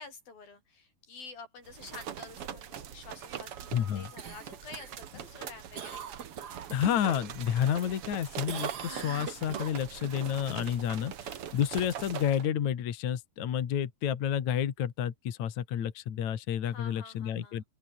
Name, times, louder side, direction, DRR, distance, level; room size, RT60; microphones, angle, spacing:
voice 1, 0.0-6.0 16.6-17.7, left 4 dB, 90° left, 8.5 m, -49 dB
sound 1, 1.7-12.5, right 9 dB, 50° right, 1.9 m, -42 dB
voice 2, 3.7-4.1 6.7-17.6, left 9 dB, 60° left, 3.1 m, -30 dB
Cough, 4.2-7.2 7.6-8.2 8.5-10.1 14.6-14.7, right 8 dB, 70° right, 0.9 m, -43 dB
open air
omnidirectional pair, 4.1 m